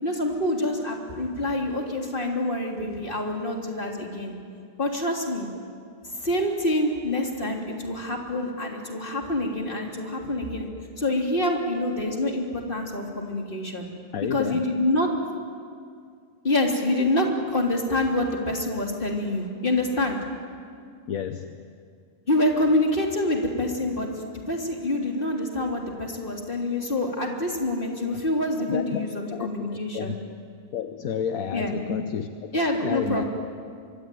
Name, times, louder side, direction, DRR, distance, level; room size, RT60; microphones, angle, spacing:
voice 1, 0.0-4.3 4.8-5.5 6.2-10.7 11.0-13.9 14.3-15.1 16.4-20.2 22.3-24.1 24.5-30.2 31.5-31.8 32.5-33.3, left 1 dB, 35° left, 1 dB, 3.5 m, -26 dB
voice 2, 14.1-14.8 21.1-21.6 28.6-30.2 30.7-33.2, left 8 dB, 70° left, 8 dB, 1.3 m, -31 dB
24.5 x 24.5 x 9.3 m, 2.2 s
omnidirectional pair, 1.6 m